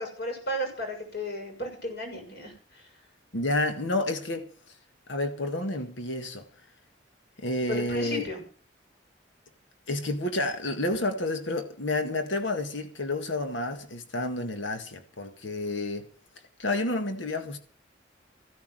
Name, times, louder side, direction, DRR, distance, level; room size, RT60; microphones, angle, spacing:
voice 1, 0.0-2.5 7.7-8.4, equal, 60° left, 6.7 m, -34 dB
voice 2, 3.3-4.7 5.1-6.5 7.4-8.3 9.9-16.1 16.6-17.6, left 2 dB, 90° left, 1.8 m, -30 dB
16.0 x 9.5 x 7.6 m
head